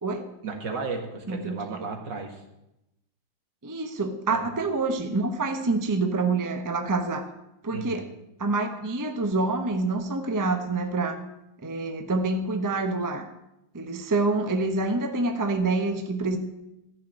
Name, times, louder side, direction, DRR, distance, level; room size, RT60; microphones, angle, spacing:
voice 1, 0.4-2.4 4.3-4.4 7.7-8.0, right 4 dB, 75° right, 3 dB, 2.5 m, -34 dB
voice 2, 1.3-1.8 3.6-7.3 7.6-8.0 8.4-11.2 11.6-13.3 13.7-16.4, right 3 dB, 15° right, 7 dB, 0.6 m, -27 dB
14.0 x 5.8 x 8.8 m, 0.90 s
omnidirectional pair, 2.0 m